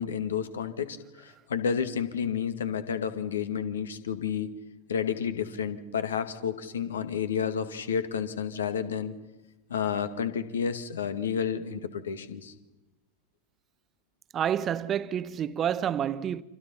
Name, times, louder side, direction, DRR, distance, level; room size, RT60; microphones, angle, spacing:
voice 1, 0.0-4.5 4.9-9.2 9.7-12.5, left 7 dB, 65° left, 2.1 m, -31 dB
voice 2, 14.3-16.4, right 9 dB, 25° right, 1.0 m, -28 dB
30.0 x 25.5 x 5.7 m
figure-of-eight pair, 90°, 0 cm